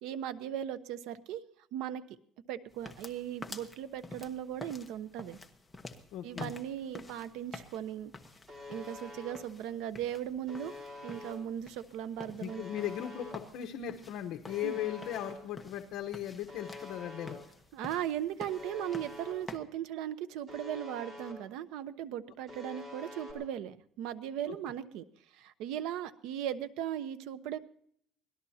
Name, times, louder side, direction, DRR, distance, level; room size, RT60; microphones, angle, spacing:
voice 1, 0.0-1.4 1.7-2.2 2.5-5.4 6.2-8.1 8.7-10.7 11.0-12.6 14.6-14.8 17.7-25.0 25.3-27.6, right 10 dB, 75° right, 13 dB, 1.0 m, -38 dB
sound 1, 2.7-19.6, left 2 dB, 10° left, 1.2 m, -50 dB
voice 2, 6.1-6.5 12.4-17.4 24.5-24.6, left 11 dB, 60° left, 4 dB, 1.1 m, -38 dB
Alarm, 8.5-9.3 10.5-11.3 12.5-13.3 14.5-15.3 16.5-17.3 18.5-19.3 20.5-21.3 22.5-23.3, left 2 dB, 25° right, 4.4 m, -46 dB
25.0 x 18.5 x 2.9 m, 0.64 s
cardioid pair, 170°, 0 cm